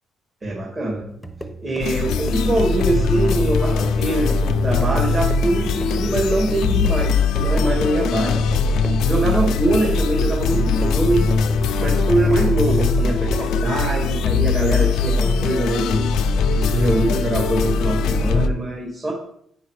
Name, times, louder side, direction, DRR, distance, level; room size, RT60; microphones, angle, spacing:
voice 1, 0.4-1.1 1.6-8.5 9.0-11.3 11.8-16.1 16.6-19.1, right 2 dB, 35° right, -1 dB, 2.3 m, -23 dB
sound 1, 1.1-13.7, equal, ahead, 1.0 m, -38 dB
sound 2, 1.8-18.5, left 4 dB, 85° left, 0.6 m, -20 dB
9.1 x 5.7 x 4.9 m, 0.68 s
cardioid pair, 90°, 0 cm